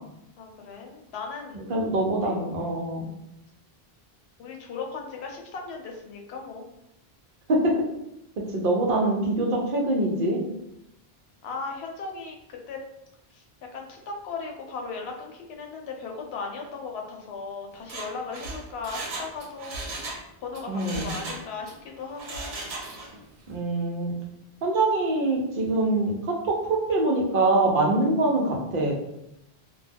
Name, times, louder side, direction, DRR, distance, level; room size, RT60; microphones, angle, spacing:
voice 1, 0.4-1.6 2.2-2.4 4.4-6.6 11.4-12.8 13.3-13.4 13.7-20.1 20.4-22.5, left 4 dB, 75° left, 1 dB, 0.8 m, -37 dB
voice 2, 1.5-3.1 7.5-7.7 8.5-10.4 20.7-21.1 23.5-24.2 24.6-28.9, right 2 dB, 60° right, 0 dB, 0.7 m, -24 dB
Mechanisms, 17.8-20.2 20.5-21.8 22.1-23.2 23.5-23.6, right 2 dB, 90° right, 0.9 m, -37 dB
2.2 x 2.2 x 3.3 m, 0.85 s
omnidirectional pair, 1.1 m